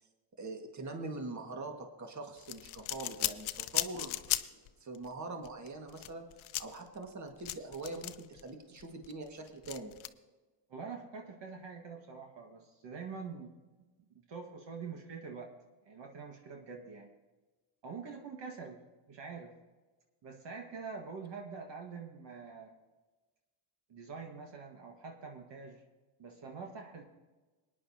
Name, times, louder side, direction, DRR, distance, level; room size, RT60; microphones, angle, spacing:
voice 1, 0.4-6.3 6.6-9.9, right 2 dB, 35° right, 3 dB, 1.9 m, -43 dB
sound 1, 2.4-4.7 5.0-5.1 5.4-8.4 8.8-10.1, left 15 dB, 70° left, 0.7 m, -37 dB
voice 2, 10.7-13.5 14.1-15.5 15.9-17.1 17.8-18.8 19.1-19.5 20.2-22.7 23.9-25.8 26.2-27.0, right 5 dB, 60° right, 2 dB, 1.8 m, -45 dB
19.5 x 10.0 x 2.9 m, 1.2 s
cardioid pair, 75°, 49 cm